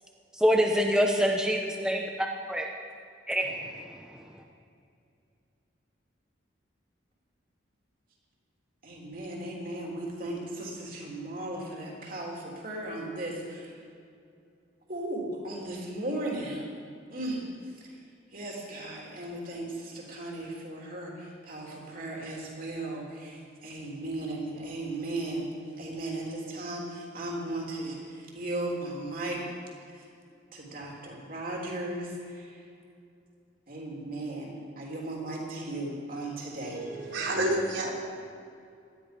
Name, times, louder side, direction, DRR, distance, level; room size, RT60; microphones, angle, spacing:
voice 1, 0.3-2.7 3.3-3.7, equal, 5° right, 0 dB, 0.8 m, -26 dB
voice 2, 8.8-13.8 14.9-16.6 17.1-18.0 18.3-25.4 25.8-29.4 29.9-30.1 30.5-32.7 33.7-36.8, right 1 dB, 45° right, -2 dB, 3.3 m, -36 dB
voice 3, 36.6-37.9, right 1 dB, 80° right, -2 dB, 3.3 m, -29 dB
18.5 x 13.0 x 5.2 m, 2.4 s
head